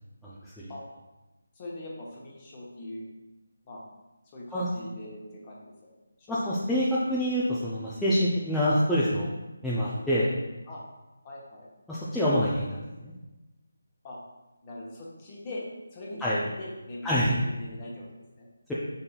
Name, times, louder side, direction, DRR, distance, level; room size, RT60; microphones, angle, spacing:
voice 1, 0.2-0.7 4.5-4.7 6.3-9.3 9.6-10.3 11.9-13.1 16.2-16.4 17.0-17.4, equal, 5° left, -10 dB, 0.5 m, -26 dB
voice 2, 1.5-3.1 3.6-3.8 4.3-5.7 6.2-6.6 9.8-9.9 10.7-10.8 11.2-11.7 14.0-14.2 14.6-18.5, left 1 dB, 25° left, -4 dB, 1.0 m, -41 dB
5.2 x 4.0 x 2.3 m, 1.1 s
figure-of-eight pair, 160°, 0 cm